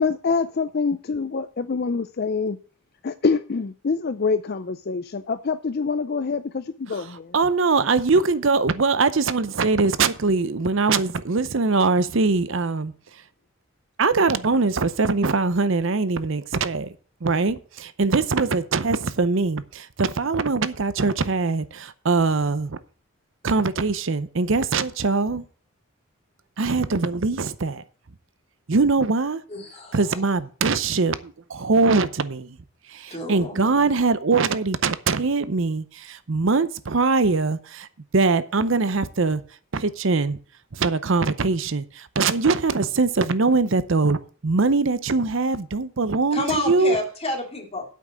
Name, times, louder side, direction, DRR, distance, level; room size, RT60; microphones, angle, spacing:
voice 1, 0.0-2.6 3.0-7.3, left 4 dB, 45° left, 0.4 m, -25 dB
voice 2, 7.3-12.9 14.0-16.9 17.2-22.8 23.4-25.4 26.6-27.8 28.7-29.4 29.9-31.1 31.5-32.6 32.9-37.9 38.1-39.4 39.7-40.4 40.7-47.0, right 4 dB, 60° right, 0.7 m, -22 dB
voice 3, 29.5-30.0 33.1-33.6 46.3-47.8, left 2 dB, 30° left, 2.4 m, -29 dB
8.4 x 6.1 x 7.5 m
head